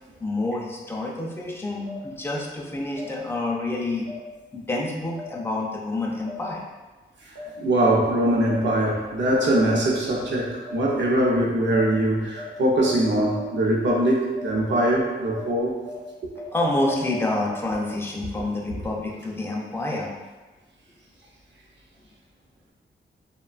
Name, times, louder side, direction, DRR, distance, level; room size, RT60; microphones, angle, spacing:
voice 1, 0.2-4.1 4.5-6.6 16.5-20.1, left 2 dB, 10° left, -2 dB, 0.3 m, -28 dB
sound 1, 1.8-2.0 2.9-3.1 4.0-4.2 5.1-5.3 6.2-6.4 7.3-7.5 8.4-8.6 9.5-9.7 10.6-10.8 11.7-11.9 12.3-12.5 12.8-13.0 13.3-13.5 13.8-14.0 14.3-14.5 14.8-15.0 15.3-15.5 15.8-16.0 16.3-17.5, left 1 dB, 85° right, 0.9 m, -38 dB
voice 2, 7.6-15.7, right 1 dB, 60° right, -2 dB, 0.6 m, -22 dB
2.9 x 2.2 x 2.4 m, 1.2 s
wide cardioid pair, 140°, 21 cm